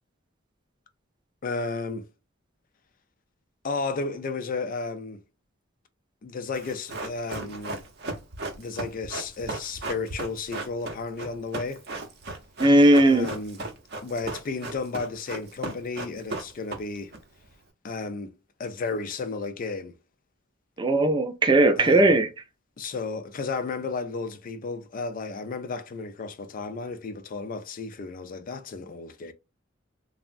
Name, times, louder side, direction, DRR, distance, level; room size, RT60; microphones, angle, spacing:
voice 1, 1.4-2.1 3.6-5.2 6.2-7.8 8.6-11.8 13.1-13.6 14.0-17.1 17.8-18.3 18.6-19.9 21.8-22.2 22.8-29.3, left 4 dB, 45° left, 0.4 m, -33 dB
Run, 6.5-17.2 17.4-17.5, right 2 dB, 55° right, 0.6 m, -36 dB
voice 2, 12.6-13.3 20.8-22.3, right 1 dB, 25° right, 0.4 m, -18 dB
3.4 x 2.0 x 2.4 m
head